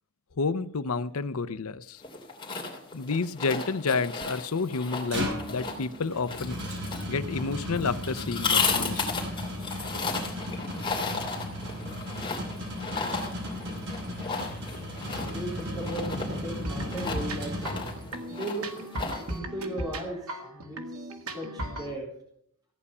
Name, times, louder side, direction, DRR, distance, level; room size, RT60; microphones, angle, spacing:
voice 1, 0.4-2.0 2.9-6.6 7.1-9.0, left 4 dB, 85° left, 14 dB, 0.7 m, -30 dB
sound 1, 2.0-19.4, left 4 dB, 20° left, 3.0 m, -34 dB
sound 2, 5.1-18.3, left 1 dB, 55° right, 4.7 m, -36 dB
voice 2, 14.9-17.7 18.3-18.8 19.3-22.1, right 1 dB, 20° right, -3 dB, 4.0 m, -37 dB
sound 3, 16.6-21.9, right 1 dB, 85° right, 1.9 m, -37 dB
15.5 x 9.7 x 5.6 m, 0.68 s
head